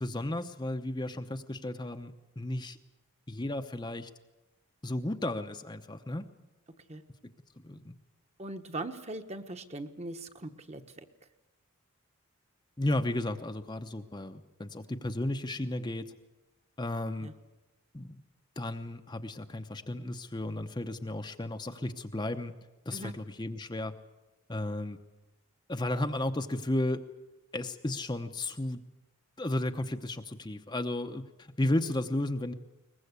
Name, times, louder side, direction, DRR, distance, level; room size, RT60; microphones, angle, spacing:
voice 1, 0.0-2.8 3.3-4.1 4.8-6.2 7.6-7.9 12.8-16.1 16.8-17.3 17.9-18.2 18.6-22.5 22.9-23.9 24.5-25.0 25.7-27.0 27.5-28.8 29.4-32.5, left 1 dB, 20° left, 6 dB, 0.8 m, -33 dB
voice 2, 8.4-11.1 17.2-17.3 22.9-23.1, right 2 dB, 30° right, 7 dB, 1.2 m, -40 dB
22.5 x 20.0 x 8.3 m, 1.0 s
head